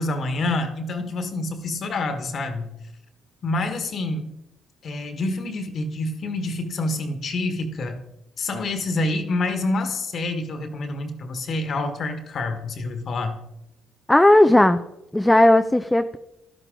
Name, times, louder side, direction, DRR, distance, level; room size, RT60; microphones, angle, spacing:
voice 1, 0.0-2.7 3.4-4.3 4.8-8.0 8.4-13.4, left 2 dB, 55° left, 8 dB, 1.5 m, -27 dB
voice 2, 14.1-14.8 15.1-16.2, left 1 dB, 10° left, 9 dB, 0.6 m, -15 dB
12.0 x 11.5 x 3.8 m, 0.88 s
hypercardioid pair, 45°, 0 cm